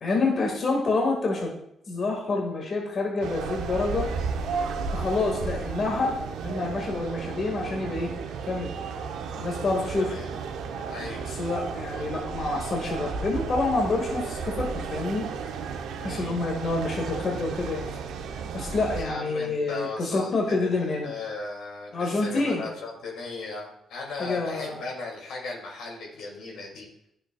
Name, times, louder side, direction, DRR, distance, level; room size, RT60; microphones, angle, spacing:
voice 1, 0.0-1.5 1.9-4.1 4.9-8.1 8.5-8.7 9.3-10.1 11.3-15.2 16.0-17.9 18.5-21.1 21.9-22.6 24.2-24.8, left 3 dB, 50° left, 0 dB, 1.7 m, -27 dB
sound 1, 3.2-19.1, right 5 dB, 80° right, 0.7 m, -33 dB
voice 2, 10.0-10.3 10.9-11.3 16.0-16.4 19.0-26.9, left 3 dB, 80° left, 0 dB, 2.3 m, -37 dB
10.5 x 6.5 x 2.3 m, 0.76 s
supercardioid pair, 65°, 0 cm